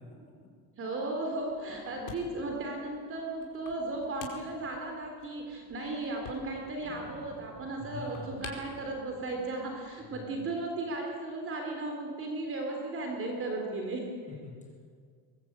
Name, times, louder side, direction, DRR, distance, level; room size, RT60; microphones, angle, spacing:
voice 1, 0.8-14.1, right 2 dB, 30° right, 2 dB, 3.6 m, -35 dB
sound 1, 1.4-10.1, left 7 dB, 75° left, 5.0 m, -51 dB
voice 2, 1.7-2.0 7.8-8.5 10.0-10.4 14.3-14.9, left 5 dB, 15° left, 0 dB, 7.5 m, -46 dB
sound 2, 6.8-10.4, right 2 dB, 45° right, 4.8 m, -54 dB
23.0 x 21.0 x 8.8 m, 2.1 s
cardioid pair, 155°, 43 cm